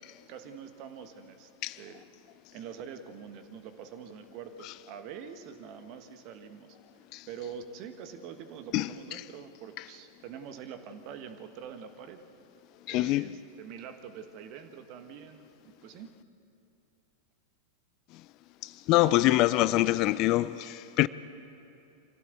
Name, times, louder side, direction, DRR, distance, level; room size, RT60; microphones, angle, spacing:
voice 1, 0.3-1.5 1.8-2.0 2.5-6.8 7.3-12.2 12.9-16.1, right 7 dB, 40° right, 1.5 m, -45 dB
voice 2, 12.9-13.3 18.6-21.1, left 17 dB, 40° left, 0.4 m, -25 dB
25.0 x 16.0 x 8.1 m
figure-of-eight pair, 90°, 0 cm